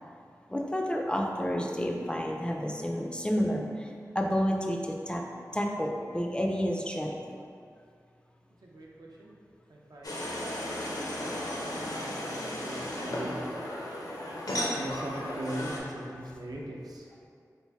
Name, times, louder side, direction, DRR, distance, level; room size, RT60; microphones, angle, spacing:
voice 1, 0.5-5.2 5.5-7.4, equal, 15° left, 0 dB, 0.3 m, -30 dB
voice 2, 8.6-9.4 9.7-13.5 14.8-17.1, right 1 dB, 75° right, -3 dB, 0.5 m, -41 dB
sound 1, 10.0-15.8, left 1 dB, 65° left, 0.6 m, -35 dB
3.2 x 2.5 x 3.4 m, 2.3 s
wide cardioid pair, 60°, 7 cm